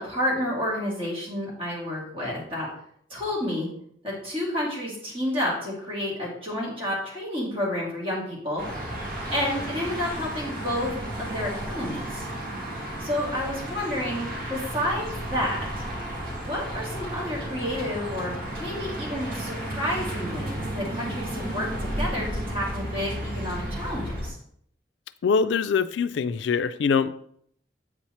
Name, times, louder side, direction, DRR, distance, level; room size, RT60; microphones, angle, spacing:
voice 1, 0.0-2.7 3.1-3.7 4.0-8.6 9.3-12.3 13.0-15.7 16.4-18.3 18.6-24.4, left 1 dB, 30° right, -5 dB, 2.4 m, -30 dB
sound 1, 8.6-24.3, right 1 dB, 50° right, 1.8 m, -33 dB
voice 2, 25.2-27.1, left 5 dB, 85° left, 13 dB, 0.3 m, -23 dB
7.8 x 5.7 x 3.0 m, 0.66 s
head